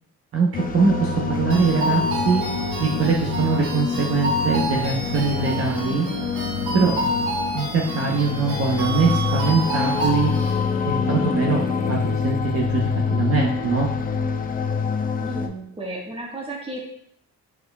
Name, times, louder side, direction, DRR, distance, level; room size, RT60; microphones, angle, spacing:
sound 1, 0.5-15.5, left 5 dB, 30° left, 0.5 m, -26 dB
voice 1, 0.7-2.4 2.8-6.0 6.7-7.1 7.5-10.3 10.8-12.8 13.1-13.9, right 4 dB, 50° right, -2 dB, 0.8 m, -22 dB
sound 2, 1.5-10.6, right 1 dB, 80° right, 1.7 m, -29 dB
Bowed string instrument, 9.1-12.3, left 5 dB, 60° left, 1.4 m, -32 dB
voice 2, 15.2-16.9, right 1 dB, 20° right, -2 dB, 1.3 m, -33 dB
4.4 x 4.4 x 2.2 m, 0.69 s
cardioid pair, 90°, 30 cm